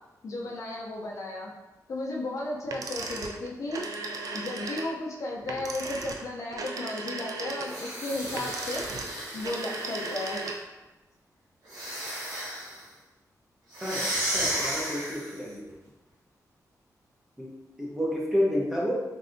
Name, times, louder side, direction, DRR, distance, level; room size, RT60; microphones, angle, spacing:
voice 1, 0.2-1.5 1.9-3.8 4.3-8.9 9.3-10.4, left 2 dB, 55° left, -2 dB, 0.5 m, -34 dB
sound 1, 2.7-10.8, right 3 dB, 65° right, 0.3 m, -36 dB
sound 2, 7.6-10.6 11.6-12.8 13.7-15.4, right 1 dB, 90° right, 1.1 m, -34 dB
voice 2, 13.8-15.6 17.4-17.5 17.8-19.0, equal, 5° right, -5 dB, 0.7 m, -30 dB
3.2 x 2.6 x 2.5 m, 1.1 s
wide cardioid pair, 165°, 7 cm